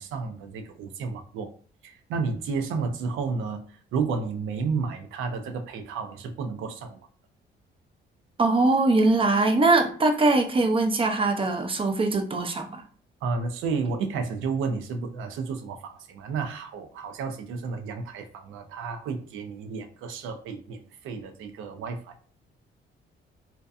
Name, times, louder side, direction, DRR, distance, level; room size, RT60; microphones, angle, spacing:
voice 1, 0.0-1.5 1.8-7.0 13.2-22.1, right 4 dB, 85° right, 6 dB, 0.5 m, -32 dB
voice 2, 8.4-12.8, right 2 dB, 25° right, 4 dB, 0.5 m, -22 dB
2.7 x 2.2 x 2.3 m, 0.43 s
cardioid pair, 90°, 20 cm